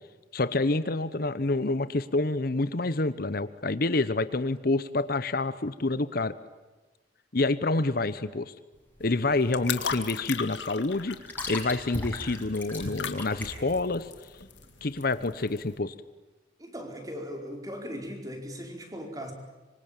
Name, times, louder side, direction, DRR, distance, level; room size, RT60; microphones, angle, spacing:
voice 1, 0.3-6.3 7.3-8.5 9.0-14.1 14.8-15.9, left 2 dB, 55° left, 14 dB, 1.0 m, -28 dB
sound 1, 8.7-15.4, left 2 dB, 10° left, 6.2 m, -40 dB
sound 2, 9.0-15.7, left 6 dB, 85° left, 2.1 m, -38 dB
voice 2, 16.6-19.3, equal, 20° right, 3 dB, 4.7 m, -39 dB
26.0 x 25.0 x 9.0 m, 1.2 s
head